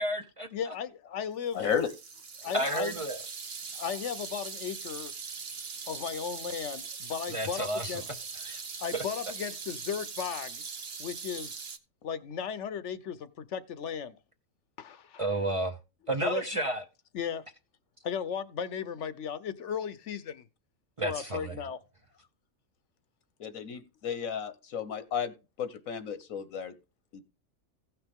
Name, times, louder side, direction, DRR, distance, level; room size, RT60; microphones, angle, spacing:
voice 1, 0.0-0.7 2.5-3.2 7.3-8.0 8.4-8.6 8.9-9.0 15.2-15.8 16.1-16.8 21.0-21.6, right 1 dB, 30° right, 0.9 m, -31 dB
voice 2, 0.5-1.6 2.4-3.0 3.7-5.1 5.9-8.0 8.8-10.6 11.0-11.5 12.0-14.2 14.8-15.2 16.2-16.4 17.1-17.4 18.0-20.4 21.0-21.8, left 7 dB, 65° left, 1.0 m, -35 dB
voice 3, 1.5-1.9 2.4-2.5 23.4-26.7 27.1-27.2, left 7 dB, 85° left, 1.5 m, -33 dB
sound 1, 1.5-11.8, right 5 dB, 50° right, 1.2 m, -41 dB
16.0 x 5.9 x 3.6 m
omnidirectional pair, 1.4 m